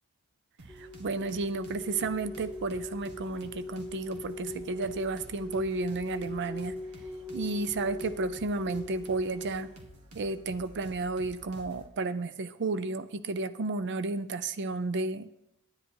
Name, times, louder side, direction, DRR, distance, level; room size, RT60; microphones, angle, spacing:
sound 1, 0.6-11.9, right 1 dB, 85° right, 1.7 m, -51 dB
sound 2, 0.7-9.8, left 1 dB, ahead, 2.2 m, -41 dB
voice 1, 0.8-6.8 7.3-9.7 10.1-15.5, right 3 dB, 55° right, 13 dB, 0.5 m, -32 dB
10.0 x 9.7 x 4.6 m, 0.83 s
head